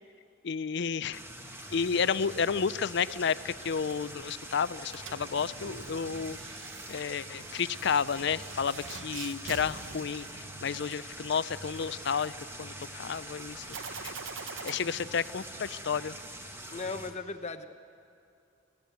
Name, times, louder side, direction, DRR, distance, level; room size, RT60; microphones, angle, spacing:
voice 1, 0.4-1.2 1.7-6.4 6.9-13.7 14.0-14.1 14.6-16.1, left 6 dB, 65° left, 17 dB, 0.5 m, -31 dB
sound 1, 1.1-17.1, right 1 dB, 15° right, 1.5 m, -44 dB
sound 2, 4.8-11.0 13.7-14.7, right 5 dB, 75° right, 0.9 m, -45 dB
voice 2, 16.7-17.7, left 3 dB, 35° left, 8 dB, 0.9 m, -37 dB
26.0 x 15.5 x 8.1 m, 2.6 s
head